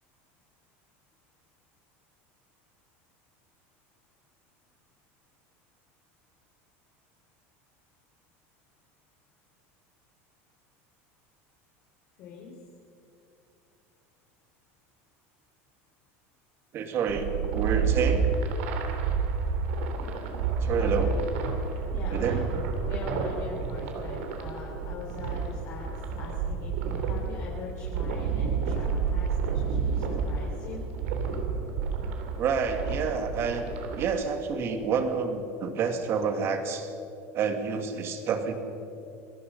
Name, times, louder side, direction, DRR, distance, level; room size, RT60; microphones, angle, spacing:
voice 1, 12.2-12.5 20.8-21.1 21.9-22.4 22.8-25.9 26.2-30.8, left 4 dB, 50° left, -3 dB, 4.2 m, -42 dB
voice 2, 16.7-18.3 20.6-21.2 22.1-22.7 23.9-24.1 32.4-33.7 34.0-36.9 37.3-38.5, right 5 dB, 40° right, 6 dB, 2.4 m, -28 dB
sound 1, 17.1-34.2, right 5 dB, 85° right, 3.4 m, -30 dB
27.0 x 20.0 x 5.4 m, 2.6 s
supercardioid pair, 150°, 7 cm